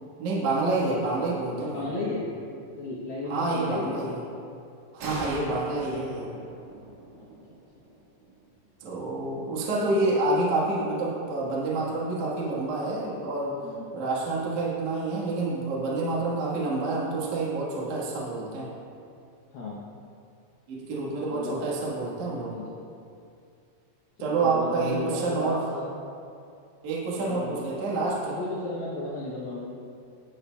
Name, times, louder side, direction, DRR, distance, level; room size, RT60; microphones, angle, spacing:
voice 1, 0.2-1.9 3.3-4.2 4.9-6.3 8.8-13.6 13.9-18.7 20.7-22.5 24.2-25.6 26.8-28.4, right 2 dB, 60° right, -6 dB, 2.1 m, -28 dB
voice 2, 1.5-2.3 2.8-4.0 7.2-7.3 13.6-13.9 19.5-19.8 21.3-21.7 22.4-22.8 24.2-25.9 27.1-27.6 28.3-29.7, left 2 dB, 80° left, -5 dB, 2.2 m, -34 dB
sound 1, 5.0-8.5, right 1 dB, 85° right, 4.1 m, -41 dB
18.0 x 6.7 x 2.2 m, 2.5 s
omnidirectional pair, 5.3 m